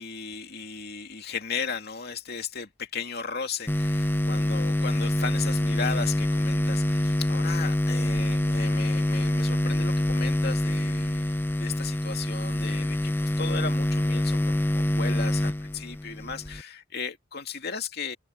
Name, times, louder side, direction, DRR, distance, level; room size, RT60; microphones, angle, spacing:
voice 1, 0.0-18.2, left 5 dB, 50° left, 2.5 m, -36 dB
sound 1, 3.7-16.6, left 1 dB, 10° left, 0.5 m, -26 dB
open air
head